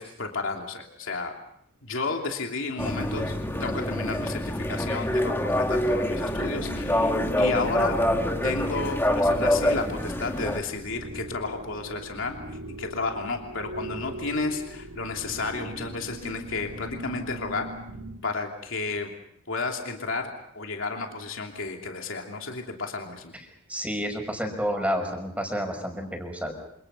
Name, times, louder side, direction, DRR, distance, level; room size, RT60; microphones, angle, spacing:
voice 1, 0.0-1.3 1.8-8.0 8.4-12.3 12.8-17.7 18.2-19.1 19.5-23.3, left 3 dB, 65° left, 2 dB, 3.0 m, -32 dB
sound 1, 2.8-10.6, left 1 dB, 10° left, 1.9 m, -26 dB
sound 2, 6.2-18.2, right 1 dB, 80° right, 2.6 m, -41 dB
voice 2, 23.7-26.5, equal, 5° right, 3 dB, 5.8 m, -30 dB
28.0 x 28.0 x 5.6 m, 0.71 s
head